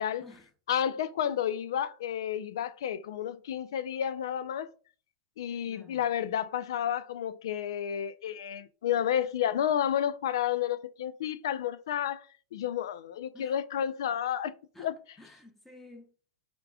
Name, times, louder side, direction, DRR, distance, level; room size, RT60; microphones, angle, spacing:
voice 1, 0.7-4.7 5.4-12.3 12.5-14.5 14.8-15.0, left 9 dB, 80° left, 0.4 m, -31 dB
voice 2, 5.7-6.1 13.3-13.6 14.7-16.1, left 2 dB, 10° left, 0.8 m, -53 dB
4.7 x 3.7 x 2.3 m
hypercardioid pair, 125°, 2 cm